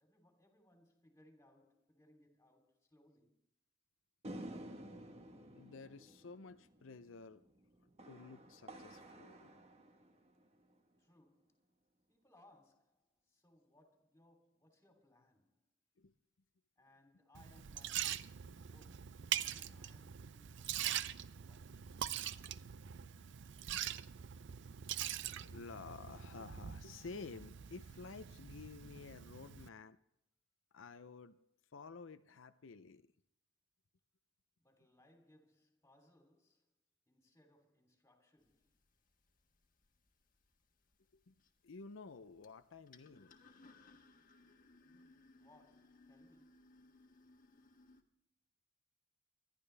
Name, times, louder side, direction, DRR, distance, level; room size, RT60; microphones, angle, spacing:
voice 1, 0.0-3.4 11.0-11.7 12.1-15.7 16.8-22.2 34.6-36.7 37.1-38.8 45.3-46.9, left 1 dB, 15° left, 3.1 m, -69 dB
sound 1, 4.2-10.7, right 1 dB, 35° right, 1.4 m, -52 dB
voice 2, 5.5-7.4 7.8-9.6 16.0-16.1 18.4-18.6 19.7-19.8 25.4-30.0 30.7-31.4 31.7-33.1 41.1-41.3 41.6-43.3, left 4 dB, 90° left, 0.6 m, -52 dB
Liquid, 17.3-29.7, right 11 dB, 65° right, 0.5 m, -43 dB
sound 2, 38.4-48.0, left 3 dB, 45° left, 1.4 m, -65 dB
25.5 x 11.5 x 3.4 m
head